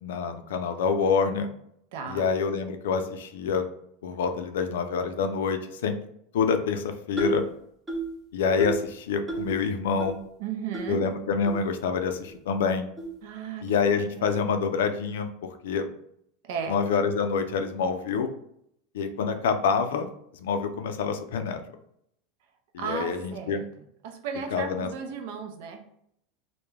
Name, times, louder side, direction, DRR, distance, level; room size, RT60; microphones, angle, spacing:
voice 1, 0.0-1.5 2.1-3.6 4.0-6.0 6.3-7.4 8.3-10.2 10.9-12.9 13.6-15.3 15.6-15.9 16.7-18.3 18.9-20.1 20.3-21.6 22.7-23.6 24.5-24.9, left 5 dB, 90° left, 7 dB, 0.3 m, -26 dB
voice 2, 1.9-2.3 10.4-11.1 13.2-14.7 16.4-16.8 22.8-23.6 24.0-25.8, right 6 dB, 70° right, 5 dB, 0.5 m, -35 dB
sound 1, 7.2-7.5 7.9-8.2 8.6-8.9 9.3-9.6 10.0-10.1 10.7-10.9 11.5-11.6 12.2-12.3 13.0-13.1, right 3 dB, 15° right, 0.6 m, -32 dB
2.2 x 2.1 x 3.1 m, 0.73 s
supercardioid pair, 135°, 0 cm